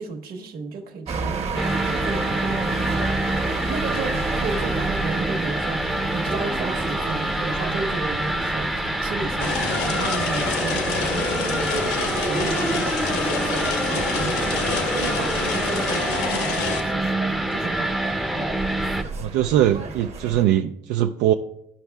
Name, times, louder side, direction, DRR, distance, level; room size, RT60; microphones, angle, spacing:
voice 1, 0.0-3.2 3.5-18.5, right 4 dB, 65° right, 4 dB, 1.3 m, -34 dB
sound 1, 1.1-20.4, right 4 dB, 40° right, 0.9 m, -32 dB
sound 2, 1.6-19.0, right 1 dB, ahead, 0.5 m, -26 dB
sound 3, 9.4-16.8, left 4 dB, 75° left, 1.2 m, -27 dB
voice 2, 19.2-21.3, right 12 dB, 90° right, 4 dB, 0.4 m, -21 dB
13.0 x 5.4 x 2.3 m, 0.77 s
cardioid pair, 110°, 17 cm